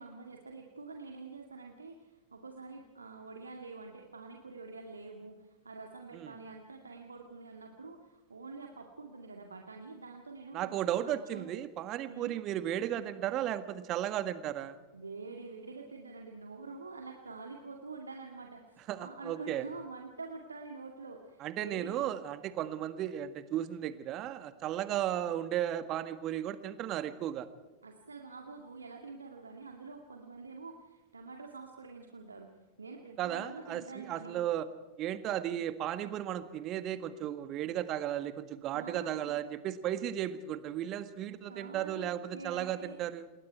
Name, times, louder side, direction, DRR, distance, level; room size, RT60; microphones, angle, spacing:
voice 1, 0.0-10.7 11.0-11.5 12.1-12.4 14.9-22.1 27.8-34.4 38.7-39.4 41.5-42.1 42.3-43.0, right 3 dB, 75° right, 3 dB, 2.1 m, -46 dB
voice 2, 10.5-14.7 18.9-19.6 21.4-27.5 33.2-34.7 35.0-43.2, right 11 dB, 35° right, 12 dB, 1.7 m, -35 dB
28.0 x 21.5 x 4.6 m, 1.1 s
figure-of-eight pair, 90°, 0 cm